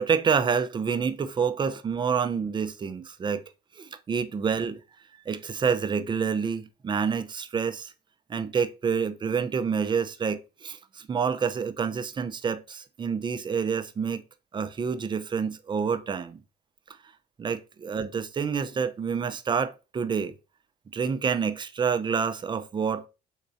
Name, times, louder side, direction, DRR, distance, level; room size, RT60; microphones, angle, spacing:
voice 1, 0.0-3.4 3.8-4.8 5.3-7.9 8.3-14.2 14.5-16.4 17.4-20.3 20.9-23.1, right 6 dB, 25° right, 0.4 m, -28 dB
3.6 x 3.1 x 2.6 m
supercardioid pair, 90°, 19 cm